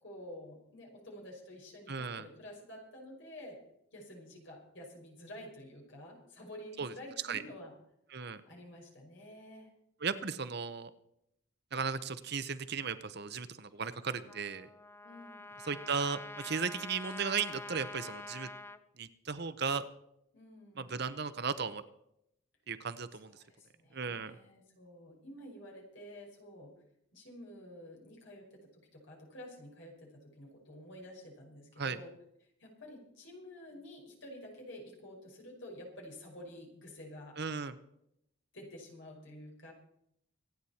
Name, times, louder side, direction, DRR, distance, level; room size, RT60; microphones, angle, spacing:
voice 1, 0.0-3.6 3.9-7.8 8.2-9.7 15.0-15.5 20.3-21.0 23.1-26.7 27.1-32.1 32.6-37.4 38.5-39.7, left 1 dB, 60° left, -1 dB, 5.2 m, -50 dB
voice 2, 1.9-2.2 6.8-6.9 7.3-7.4 8.1-8.4 10.0-10.9 11.7-14.7 15.7-18.5 19.0-19.8 20.8-21.8 22.7-23.3 23.9-24.4 31.8-32.0 37.4-37.7, right 5 dB, 50° right, 12 dB, 0.8 m, -36 dB
Trumpet, 14.3-18.8, left 2 dB, 10° left, 0.5 m, -46 dB
25.5 x 9.4 x 4.3 m, 0.77 s
head